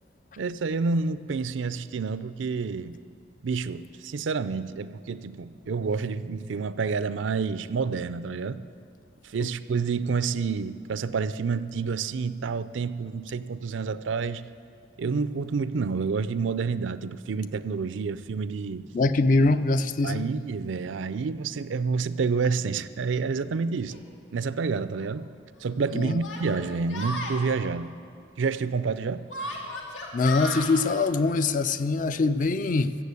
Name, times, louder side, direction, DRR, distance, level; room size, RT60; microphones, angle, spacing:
voice 1, 0.4-3.0 3.4-8.6 9.2-14.4 15.0-18.9 20.0-24.0 24.3-25.3 25.6-28.0 28.4-29.2, right 5 dB, 75° right, 14 dB, 0.4 m, -29 dB
voice 2, 18.9-20.3 25.9-26.2 30.1-33.0, left 3 dB, 40° left, 12 dB, 0.4 m, -23 dB
Yell, 23.9-24.0 25.0-25.1 26.2-27.4 29.3-30.7, left 1 dB, 90° left, 1.9 m, -34 dB
15.0 x 7.5 x 8.3 m, 2.3 s
head